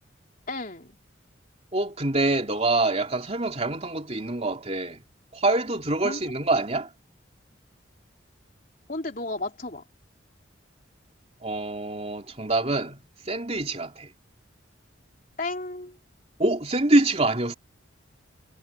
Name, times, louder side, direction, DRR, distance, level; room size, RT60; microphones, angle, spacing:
voice 1, 0.5-0.9 6.0-6.2 8.9-9.8 15.4-16.0, left 2 dB, 45° left, 3.6 m, -33 dB
voice 2, 1.7-5.0 5.3-6.9 11.4-14.1 16.4-17.5, right 2 dB, 30° right, 3.2 m, -25 dB
head